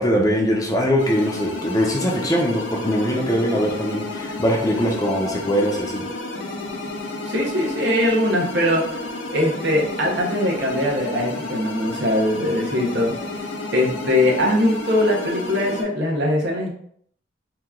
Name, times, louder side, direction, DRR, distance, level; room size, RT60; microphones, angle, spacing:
voice 1, 0.0-6.0, equal, 20° left, 0 dB, 0.5 m, -21 dB
sound 1, 1.0-15.8, left 2 dB, 85° left, 0.6 m, -31 dB
voice 2, 7.2-9.0 9.3-13.1 13.7-16.7, left 1 dB, 65° right, -2 dB, 0.8 m, -21 dB
2.9 x 2.3 x 3.5 m, 0.66 s
head